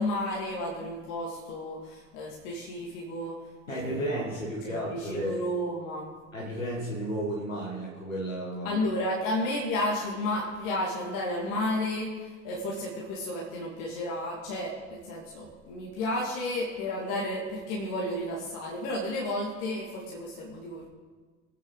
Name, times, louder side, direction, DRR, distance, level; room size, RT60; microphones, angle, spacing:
voice 1, 0.0-4.2 4.6-6.1 8.6-20.9, left 1 dB, 60° left, -3 dB, 2.5 m, -32 dB
voice 2, 3.7-5.4 6.3-8.8, right 1 dB, 90° left, -5 dB, 1.7 m, -33 dB
23.0 x 9.2 x 4.0 m, 1.4 s
figure-of-eight pair, 60°, 39 cm